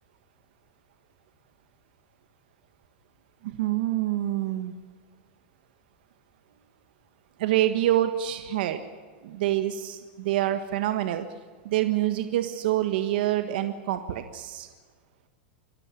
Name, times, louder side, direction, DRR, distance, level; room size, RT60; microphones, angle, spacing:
voice 1, 3.6-4.7 7.4-8.8 9.2-11.2 11.6-14.7, right 13 dB, 60° right, 9 dB, 1.5 m, -26 dB
26.5 x 14.0 x 9.7 m, 1.5 s
supercardioid pair, 165°, 6 cm